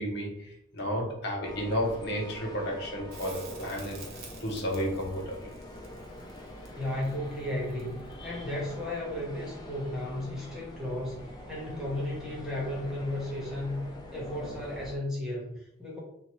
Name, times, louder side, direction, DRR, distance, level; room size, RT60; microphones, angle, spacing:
voice 1, 0.0-4.0 4.4-5.5 8.2-8.4, equal, 55° left, 0 dB, 0.7 m, -32 dB
sound 1, 1.4-15.0, left 1 dB, 20° left, 0.3 m, -44 dB
Crackle, 3.1-8.2 11.0-11.1, right 4 dB, 50° right, 0.6 m, -50 dB
voice 2, 6.7-13.8 14.1-16.0, left 1 dB, ahead, -5 dB, 0.8 m, -34 dB
2.7 x 2.3 x 2.9 m, 0.76 s
head